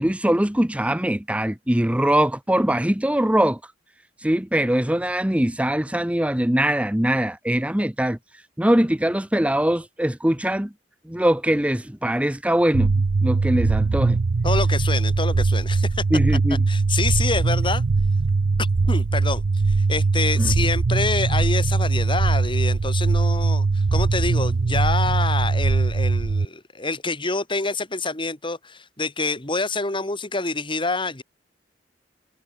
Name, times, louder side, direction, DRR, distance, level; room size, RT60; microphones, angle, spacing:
voice 1, 0.0-3.6 4.2-8.2 8.6-10.7 11.1-14.2 16.1-16.6 20.4-20.5, right 1 dB, 5° right, 0.9 m, -22 dB
sound 1, 12.7-26.4, right 3 dB, 75° right, 0.6 m, -21 dB
voice 2, 14.4-16.0 16.7-17.8 18.9-31.2, left 3 dB, 30° left, 3.4 m, -27 dB
head